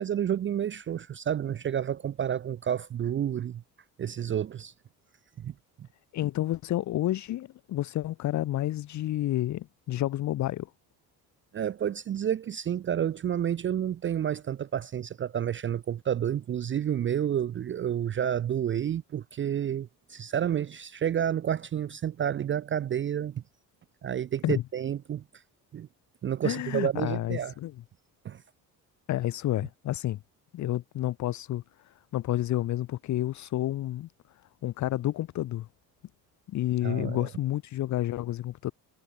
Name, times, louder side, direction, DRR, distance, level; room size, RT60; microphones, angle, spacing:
voice 1, 0.0-3.6 4.0-4.7 5.4-5.5 11.5-23.4 24.0-25.2 25.7-25.9 26.2-27.5 28.2-28.4 36.8-37.2, right 9 dB, 30° right, 0.4 m, -30 dB
voice 2, 6.1-10.7 24.4-24.6 26.4-27.7 29.1-30.2 30.5-34.1 34.6-35.7 36.5-38.7, left 14 dB, 50° left, 0.6 m, -30 dB
cardioid pair, 100°, 38 cm